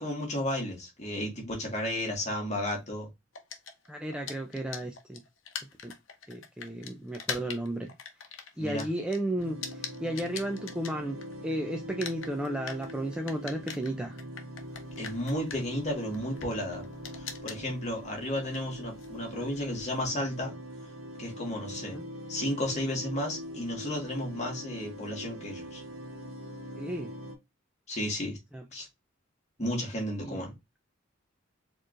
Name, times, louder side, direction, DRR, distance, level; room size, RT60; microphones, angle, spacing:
voice 1, 0.0-3.1 8.6-8.9 15.0-16.8 17.1-20.5 21.2-22.0 22.3-25.8 27.9-28.4 28.7-28.9 29.6-30.5, left 1 dB, 35° left, 1.5 m, -33 dB
sound 1, 3.3-11.5 11.8-20.1, left 6 dB, 65° left, 0.7 m, -43 dB
voice 2, 3.9-5.2 5.8-5.9 6.3-7.9 8.6-14.2 21.9-22.1 26.8-27.1 28.5-28.6 30.2-30.4, right 1 dB, 5° right, 0.4 m, -34 dB
sound 2, 9.4-27.4, equal, 75° right, 0.7 m, -43 dB
4.4 x 3.1 x 2.5 m
head